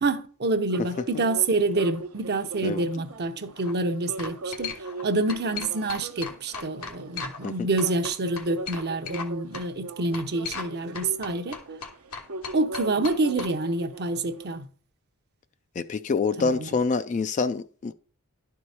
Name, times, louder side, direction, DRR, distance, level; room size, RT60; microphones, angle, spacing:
voice 1, 0.0-4.7 5.0-11.6 12.5-14.7 16.4-16.7, right 2 dB, 50° right, 0.8 m, -27 dB
sound 1, 0.7-14.6, right 3 dB, 80° right, 0.9 m, -40 dB
sound 2, 3.4-3.7 4.2-5.0 5.3-7.5 7.8-9.3 9.5-9.7 10.1-10.7 10.9-13.5, left 6 dB, 90° left, 1.7 m, -36 dB
voice 2, 15.8-17.9, left 4 dB, 35° left, 0.3 m, -26 dB
12.0 x 4.7 x 4.2 m
head